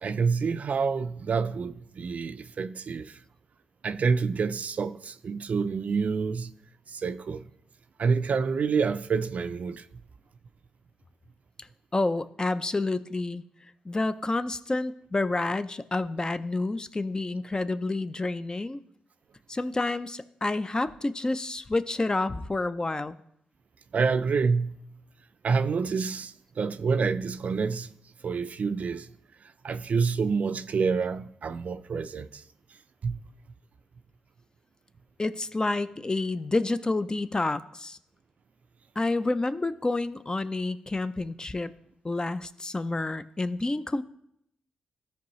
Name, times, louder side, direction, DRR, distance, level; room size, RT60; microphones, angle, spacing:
voice 1, 0.0-3.2 3.8-6.5 6.9-7.4 8.0-9.9 23.9-24.8 25.4-27.9 28.2-29.1 29.6-32.4 33.0-33.2, right 5 dB, 55° right, 0.4 m, -27 dB
voice 2, 11.9-13.4 13.9-18.8 19.5-23.2 35.2-38.0 39.0-41.7 42.0-44.0, left 2 dB, 25° left, 0.5 m, -29 dB
13.5 x 4.7 x 3.1 m
supercardioid pair, 45°, 3 cm